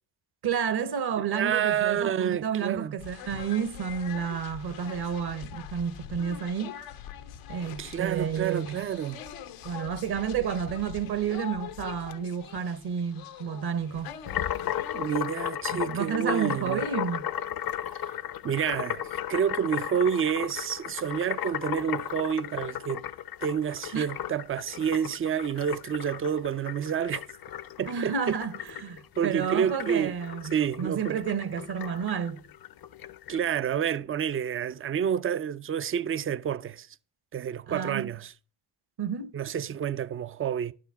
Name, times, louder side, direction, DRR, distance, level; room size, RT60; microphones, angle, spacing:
voice 1, 0.4-6.8 7.5-8.8 9.6-14.2 15.7-17.3 23.9-24.1 27.9-32.4 37.7-38.1 39.0-39.3, right 7 dB, 50° right, 1.0 m, -31 dB
voice 2, 1.3-2.9 7.8-9.2 14.9-16.8 17.9-18.1 18.4-23.1 23.4-27.2 27.8-28.1 29.2-30.1 30.5-31.2 33.3-36.9 37.3-38.3 39.3-40.7, right 8 dB, 30° right, 0.4 m, -29 dB
sound 1, 3.0-15.2, left 10 dB, 90° left, 1.0 m, -43 dB
sound 2, 14.3-33.4, left 10 dB, 50° left, 0.6 m, -35 dB
11.5 x 4.9 x 5.6 m
cardioid pair, 75°, 49 cm